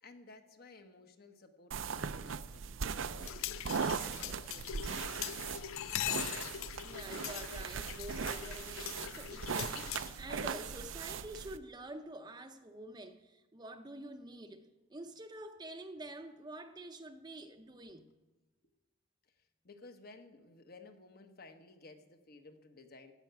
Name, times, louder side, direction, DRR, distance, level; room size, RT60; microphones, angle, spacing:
voice 1, 0.0-5.6 19.2-23.1, left 3 dB, 50° left, 6 dB, 1.2 m, -56 dB
sound 1, 1.7-11.6, right 6 dB, 70° right, 0.5 m, -39 dB
Washing Up, 3.2-10.3, left 12 dB, 90° left, 0.4 m, -41 dB
voice 2, 6.8-18.1, right 1 dB, 20° right, 6 dB, 0.6 m, -48 dB
15.5 x 5.7 x 9.3 m, 1.1 s
head